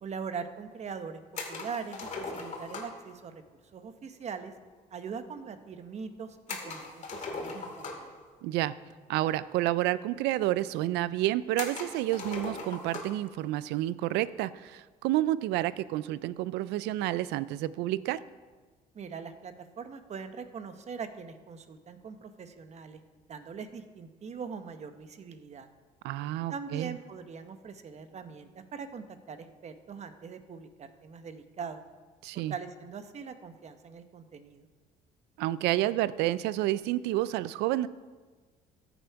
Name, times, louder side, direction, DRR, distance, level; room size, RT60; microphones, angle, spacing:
voice 1, 0.0-1.2 1.5-3.4 3.7-4.5 4.9-8.2 18.9-23.0 23.3-25.7 26.5-31.8 32.3-34.7, right 6 dB, 40° right, 9 dB, 0.9 m, -42 dB
sound 1, 1.3-3.1 6.5-8.2 9.3-9.4 9.6-9.7 10.5-10.6 11.6-13.2, left 3 dB, 45° left, 2.3 m, -39 dB
voice 2, 8.4-8.7 9.1-18.2 26.0-27.0 32.2-32.5 35.4-37.9, right 15 dB, 90° right, 17 dB, 0.4 m, -29 dB
14.0 x 8.0 x 4.6 m, 1.4 s
cardioid pair, 110°, 17 cm